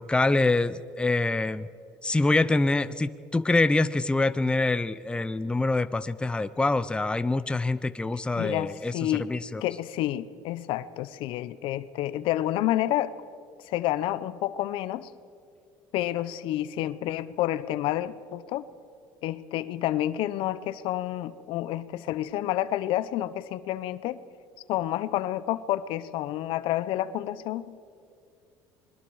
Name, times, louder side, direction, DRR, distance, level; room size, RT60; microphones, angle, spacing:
voice 1, 0.0-1.7 2.0-8.9 9.2-9.6, left 2 dB, 10° left, 13 dB, 0.6 m, -25 dB
voice 2, 8.4-9.3 9.6-13.1 13.6-15.1 15.9-18.7 19.2-24.2 24.7-27.7, left 13 dB, 70° left, 15 dB, 0.8 m, -29 dB
28.5 x 21.5 x 4.8 m, 2.3 s
supercardioid pair, 95°, 9 cm